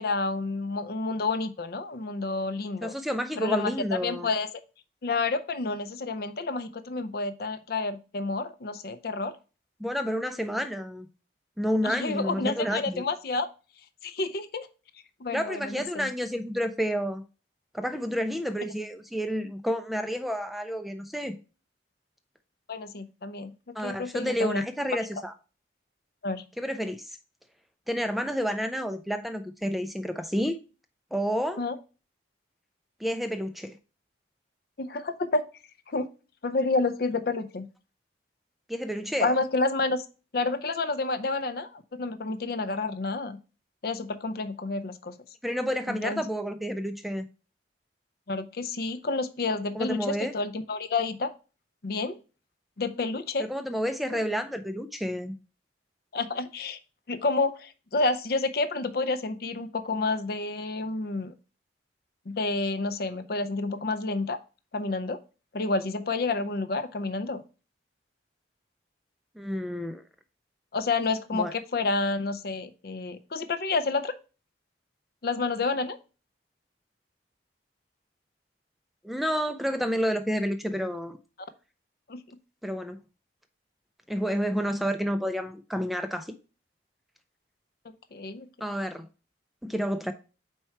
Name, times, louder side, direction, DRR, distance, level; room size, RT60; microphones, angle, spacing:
voice 1, 0.0-2.9 3.4-3.7 4.0-4.5 5.0-9.3 11.8-13.5 14.0-14.7 15.2-16.1 22.7-23.5 23.8-24.6 26.2-26.4 31.6-31.8 34.8-35.4 35.9-36.1 36.4-37.7 39.2-40.0 40.3-43.4 43.8-45.1 45.9-46.2 48.3-51.3 51.8-52.2 52.8-53.5 54.1-54.2 56.1-56.8 57.1-61.3 62.3-64.4 64.7-65.2 65.5-67.4 70.7-74.1 75.2-76.0 82.1-82.2 88.1-88.5, left 3 dB, 55° left, 0.5 m, -29 dB
voice 2, 2.8-4.3 9.8-11.1 11.6-13.1 15.3-17.2 17.7-21.4 23.7-25.3 26.6-27.2 27.9-30.6 31.1-31.6 33.0-33.8 38.7-39.4 45.4-47.2 49.7-50.3 53.4-55.3 69.4-70.0 71.3-71.5 79.0-81.2 82.6-83.0 84.1-86.3 88.6-89.1 89.6-90.1, equal, ahead, 0.4 m, -30 dB
4.5 x 4.4 x 5.7 m
head